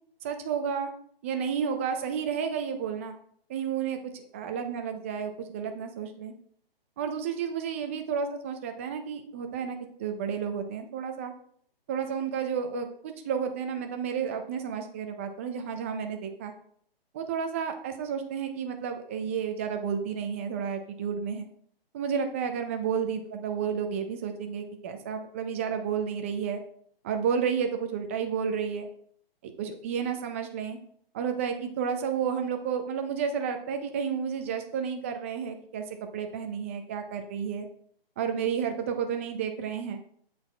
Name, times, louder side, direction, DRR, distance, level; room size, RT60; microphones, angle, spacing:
voice 1, 0.2-0.9 1.2-3.2 3.5-4.0 4.3-6.3 7.0-11.3 11.9-16.6 17.1-21.5 21.9-26.6 27.0-28.9 29.6-30.8 31.1-35.8 36.1-37.7 38.2-40.0, right 7 dB, 15° right, 6 dB, 0.4 m, -31 dB
8.8 x 4.1 x 4.3 m, 0.63 s
hypercardioid pair, 140°, 30 cm